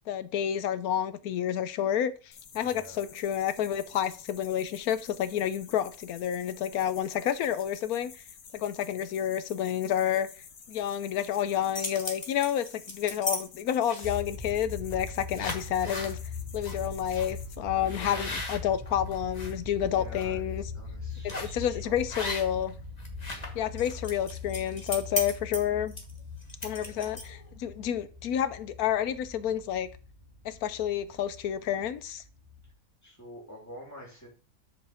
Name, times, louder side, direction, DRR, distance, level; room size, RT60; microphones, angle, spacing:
voice 1, 0.1-8.2 8.5-10.3 10.7-16.2 16.5-20.6 21.2-22.7 23.5-25.9 26.6-29.9 30.4-32.2, left 10 dB, 90° left, 13 dB, 1.2 m, -30 dB
sound 1, 2.3-17.6, left 6 dB, 70° left, 1.4 m, -51 dB
voice 2, 2.5-3.0 3.8-4.2 17.8-18.4 19.8-20.4 20.7-22.2 23.2-23.5 26.7-27.0 33.0-34.3, equal, 10° left, -3 dB, 2.9 m, -48 dB
sound 2, 11.5-13.4 13.8-14.3 14.9-15.1 15.3-16.1 16.6-16.8 17.1-17.3 17.8-19.5 20.0-20.2 21.3-21.6 22.1-22.7 23.0-27.5, left 2 dB, 30° left, 1.5 m, -36 dB
sound 3, 14.0-32.7, left 3 dB, 20° right, 1.8 m, -41 dB
6.6 x 5.3 x 5.7 m, 0.39 s
omnidirectional pair, 1.5 m